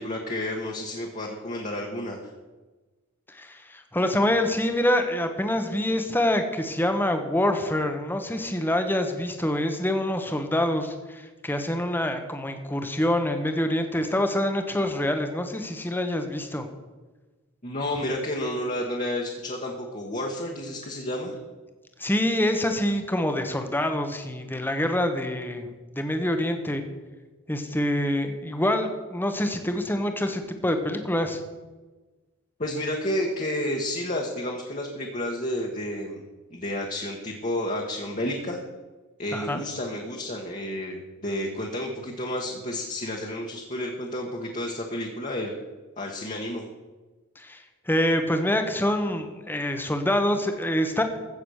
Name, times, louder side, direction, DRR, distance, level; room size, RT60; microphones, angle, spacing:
voice 1, 0.0-2.2 17.6-21.4 32.6-38.6 39.2-45.5 46.0-46.6, left 1 dB, 35° left, -1 dB, 1.4 m, -31 dB
voice 2, 3.3-16.7 22.0-25.7 26.0-26.8 27.5-31.4 39.3-39.6 47.4-51.0, left 1 dB, 10° left, 6 dB, 1.1 m, -26 dB
15.0 x 7.1 x 6.5 m, 1.2 s
head